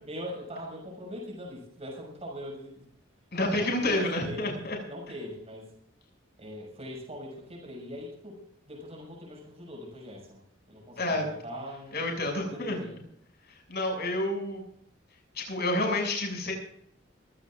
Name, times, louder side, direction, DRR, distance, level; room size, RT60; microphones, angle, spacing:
voice 1, 0.0-2.8 3.5-5.7 6.4-8.4 8.7-10.4 10.7-12.2 12.5-12.9, equal, 35° right, -1 dB, 6.1 m, -41 dB
voice 2, 3.3-4.8 11.0-11.3 11.9-12.8 13.7-14.6 15.3-16.5, left 1 dB, 55° left, 1 dB, 6.8 m, -29 dB
23.5 x 16.5 x 2.5 m, 0.71 s
head